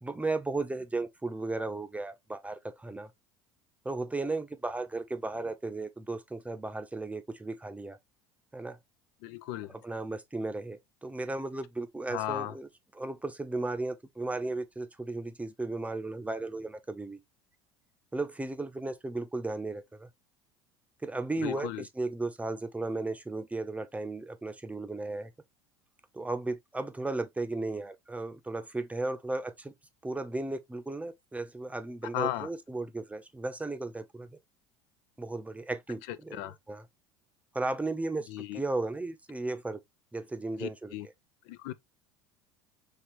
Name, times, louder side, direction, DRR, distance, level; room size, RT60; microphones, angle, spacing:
voice 1, 0.0-3.1 3.8-8.0 8.5-8.8 9.8-12.7 12.9-17.2 18.1-20.1 21.0-25.3 26.1-29.7 30.0-34.3 35.2-36.8 37.5-39.8 40.1-41.1, right 2 dB, 10° right, 0.8 m, -35 dB
voice 2, 9.2-9.7 12.1-12.5 21.4-21.9 32.1-32.5 36.1-36.6 38.3-38.6 40.6-41.1 41.5-41.7, left 14 dB, 65° left, 0.5 m, -35 dB
4.5 x 3.3 x 3.0 m
hypercardioid pair, 75°, 14 cm